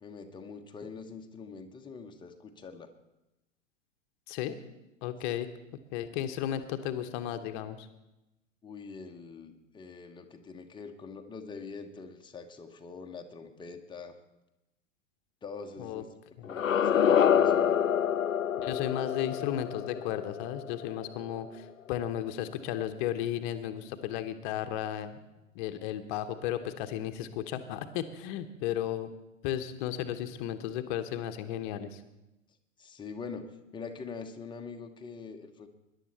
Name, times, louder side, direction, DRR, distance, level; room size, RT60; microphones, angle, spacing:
voice 1, 0.0-2.9 8.6-14.2 15.4-16.1 16.4-17.8 32.8-35.7, left 5 dB, 10° left, 5 dB, 1.1 m, -44 dB
voice 2, 5.0-5.5 5.9-7.9 15.8-16.0 16.4-16.5 18.6-25.2 25.5-29.1 29.4-32.0, left 11 dB, 40° left, 9 dB, 1.0 m, -34 dB
sound 1, 16.4-21.4, left 8 dB, 85° left, 0.5 m, -27 dB
20.5 x 11.0 x 4.2 m, 0.96 s
figure-of-eight pair, 95°, 39 cm